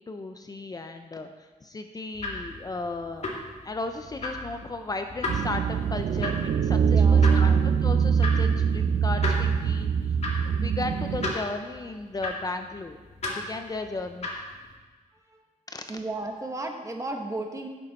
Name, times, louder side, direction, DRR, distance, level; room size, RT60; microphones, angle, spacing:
voice 1, 0.1-3.3 3.6-13.0 13.3-14.3 15.7-15.8, left 2 dB, 25° left, 6 dB, 0.6 m, -35 dB
sound 1, 2.1-14.7, left 2 dB, 50° left, 2.3 m, -37 dB
sound 2, 5.3-11.3, right 6 dB, 80° right, 0.6 m, -23 dB
voice 2, 6.9-7.6 15.3-15.4 15.9-17.7, right 2 dB, 25° right, 3 dB, 1.3 m, -34 dB
16.0 x 6.7 x 4.2 m, 1.4 s
wide cardioid pair, 125°, 14 cm